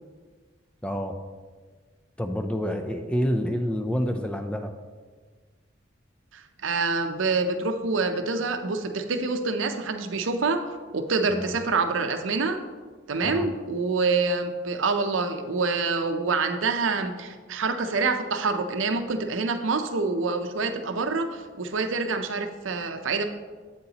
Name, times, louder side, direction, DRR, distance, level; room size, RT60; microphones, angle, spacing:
voice 1, 0.8-1.1 2.2-4.7 11.3-11.6 13.2-13.5, equal, 5° left, 6 dB, 0.4 m, -28 dB
voice 2, 6.3-10.6 10.9-12.6 13.1-23.2, right 4 dB, 80° right, 7 dB, 0.6 m, -26 dB
7.9 x 7.9 x 2.9 m, 1.5 s
head